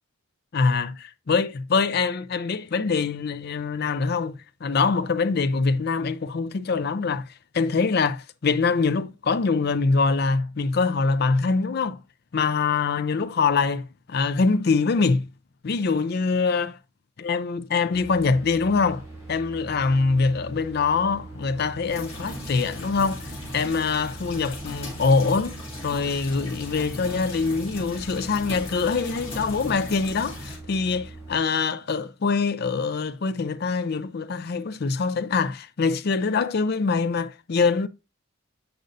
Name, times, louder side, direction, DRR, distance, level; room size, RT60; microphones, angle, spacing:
voice 1, 0.5-12.0 12.3-15.3 15.6-16.8 17.2-37.9, left 4 dB, 50° left, 0.4 m, -24 dB
sound 1, 17.9-31.4, right 2 dB, 10° right, 2.5 m, -42 dB
sound 2, 21.9-30.6, left 1 dB, 30° left, 2.5 m, -38 dB
8.0 x 5.2 x 2.6 m
head